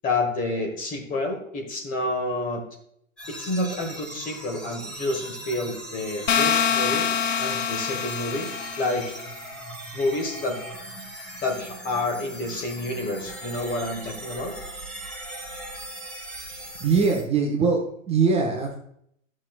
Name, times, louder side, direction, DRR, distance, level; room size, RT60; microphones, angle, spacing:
voice 1, 0.0-2.6 3.3-7.1 7.4-8.5 8.8-9.1 9.9-10.6 11.4-14.5, left 2 dB, 20° left, 2 dB, 1.3 m, -29 dB
sound 1, 3.2-17.2, right 1 dB, ahead, 1.5 m, -39 dB
sound 2, 6.3-9.2, left 7 dB, 65° left, 0.7 m, -25 dB
voice 2, 16.4-17.8 18.1-18.7, right 5 dB, 15° right, -1 dB, 0.9 m, -22 dB
11.5 x 6.2 x 2.3 m, 0.70 s
figure-of-eight pair, 110°, 41 cm